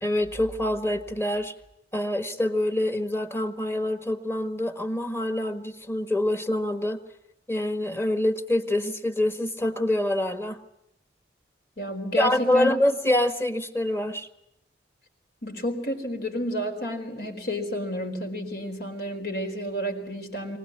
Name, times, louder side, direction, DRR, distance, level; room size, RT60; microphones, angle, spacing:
voice 1, 0.0-1.5 1.9-7.0 7.5-10.6 12.1-14.3, left 1 dB, 15° left, 8 dB, 1.6 m, -25 dB
voice 2, 11.8-12.7 15.4-20.6, equal, 65° left, 4 dB, 4.5 m, -31 dB
24.0 x 18.0 x 9.7 m, 0.78 s
head